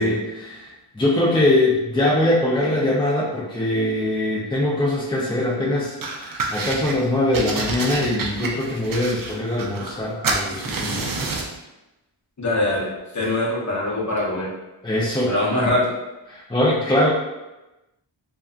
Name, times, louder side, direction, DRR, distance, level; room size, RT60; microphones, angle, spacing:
voice 1, 0.0-11.4 14.8-15.3 15.6-15.7 16.3-17.1, left 1 dB, 10° left, -5 dB, 0.4 m, -22 dB
sound 1, 6.0-7.0 7.3-10.0 10.2-11.6, right 3 dB, 45° right, 0.5 m, -28 dB
voice 2, 12.4-14.5 15.3-15.8, left 1 dB, 35° left, -5 dB, 0.8 m, -23 dB
2.6 x 2.3 x 2.4 m, 1.0 s
wide cardioid pair, 55°, 49 cm